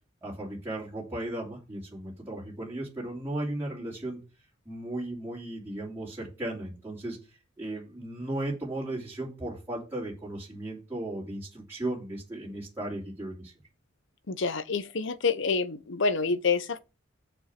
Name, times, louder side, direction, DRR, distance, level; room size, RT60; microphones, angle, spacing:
voice 1, 0.2-4.2 4.6-7.2 7.6-13.5, right 1 dB, 10° right, 3.0 m, -36 dB
voice 2, 14.3-16.8, left 4 dB, 65° left, 0.8 m, -27 dB
7.0 x 6.6 x 5.9 m
head